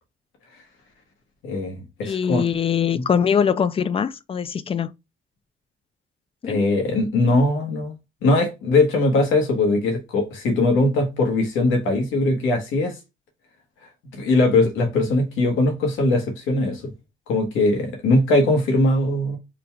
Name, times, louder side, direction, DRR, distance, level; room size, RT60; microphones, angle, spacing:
voice 1, 1.4-2.4 2.9-3.0 6.4-7.9 8.2-13.0 14.1-16.9 17.3-19.4, left 2 dB, 85° left, 1.2 m, -20 dB
voice 2, 2.0-4.9 6.4-6.6, left 7 dB, 30° left, 0.4 m, -22 dB
3.8 x 2.3 x 4.3 m
cardioid pair, 90°, 20 cm